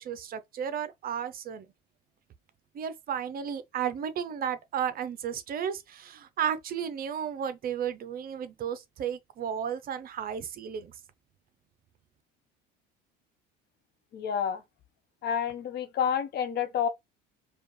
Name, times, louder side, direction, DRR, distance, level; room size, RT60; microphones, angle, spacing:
voice 1, 0.0-1.7 2.7-10.9, right 8 dB, 45° right, 0.7 m, -33 dB
voice 2, 14.1-14.6 15.2-16.9, left 8 dB, 50° left, 1.1 m, -29 dB
4.9 x 2.4 x 3.2 m
supercardioid pair, 100°, 21 cm